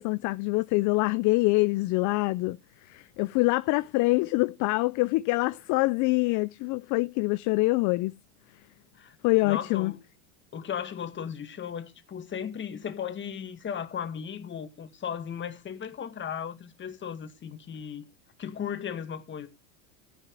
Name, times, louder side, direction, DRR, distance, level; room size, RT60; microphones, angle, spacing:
voice 1, 0.0-2.6 2.9-8.2 9.2-9.9, left 23 dB, 45° left, 0.6 m, -25 dB
voice 2, 9.4-10.0 10.5-18.0 18.4-19.5, left 8 dB, 25° left, 2.2 m, -36 dB
15.0 x 10.5 x 4.8 m
supercardioid pair, 120°, 43 cm